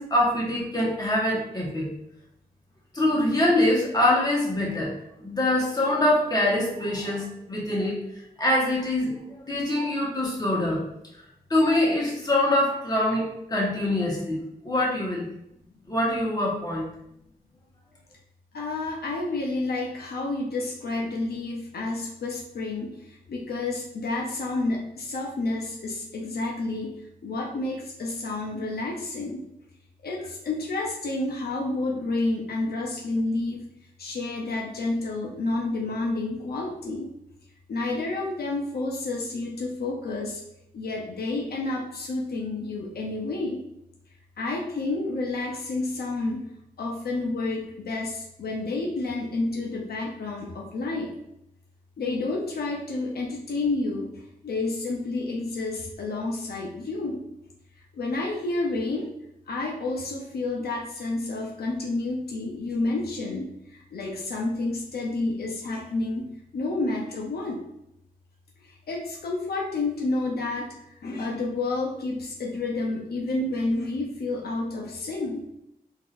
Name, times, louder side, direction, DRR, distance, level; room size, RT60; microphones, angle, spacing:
voice 1, 0.0-1.9 2.9-10.8 11.5-15.3 15.9-16.9, left 1 dB, 25° left, -4 dB, 1.2 m, -24 dB
voice 2, 18.5-26.9 27.2-29.5 30.0-33.7 34.0-37.1 37.7-40.4 40.7-43.6 44.4-46.5 46.8-51.1 52.0-57.2 57.9-59.1 59.5-67.6 68.6-75.4, left 2 dB, 85° left, 0 dB, 0.6 m, -30 dB
3.7 x 2.7 x 2.5 m, 0.81 s
wide cardioid pair, 70°, 16 cm